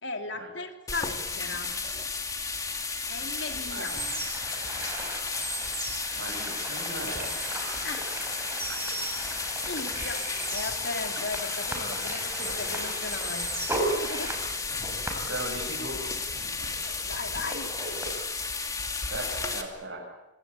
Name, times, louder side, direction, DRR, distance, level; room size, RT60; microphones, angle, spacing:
voice 1, 0.0-1.7 3.1-4.2 7.8-8.1 9.6-13.5 13.9-14.4 14.8-15.3 16.4-17.7, left 3 dB, 70° left, 5 dB, 3.1 m, -37 dB
sound 1, 0.9-19.6, left 4 dB, 20° left, 2.6 m, -33 dB
sound 2, 3.8-18.1, right 2 dB, 10° right, 6.2 m, -37 dB
voice 2, 6.2-7.3 15.3-16.0 19.1-20.0, right 2 dB, 75° right, -5 dB, 7.6 m, -37 dB
27.0 x 25.0 x 8.6 m, 0.95 s
head